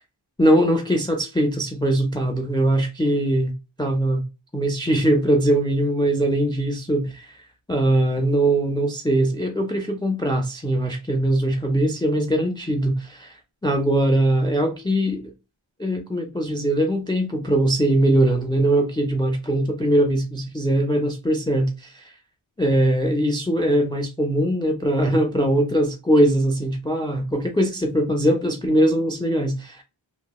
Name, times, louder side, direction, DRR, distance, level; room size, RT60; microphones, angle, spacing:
voice 1, 0.4-3.5 3.8-4.2 4.5-7.3 7.7-13.4 13.6-15.3 15.8-22.1 22.6-29.8, right 1 dB, 10° left, 0.4 m, -21 dB
2.8 x 2.2 x 2.2 m
wide cardioid pair, 45°, 49 cm